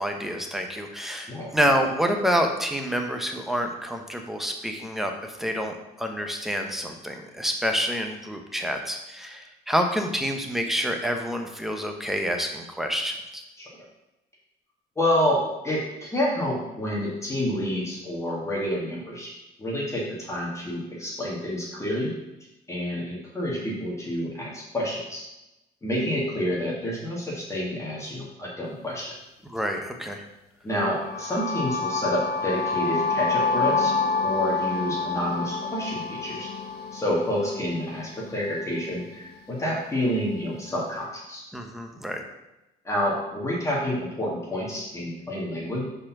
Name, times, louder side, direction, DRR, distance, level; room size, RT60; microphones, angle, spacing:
voice 1, 0.0-13.4 29.5-30.2 41.5-42.2, equal, ahead, 3 dB, 0.9 m, -28 dB
voice 2, 15.0-19.3 19.6-22.1 22.7-25.2 25.8-29.1 30.6-33.9 34.2-36.5 36.9-41.4 42.8-45.8, equal, 15° left, -5 dB, 1.9 m, -28 dB
sound 1, 30.9-38.8, left 4 dB, 70° left, 0.6 m, -28 dB
5.1 x 4.5 x 5.9 m, 0.95 s
cardioid pair, 110°, 17 cm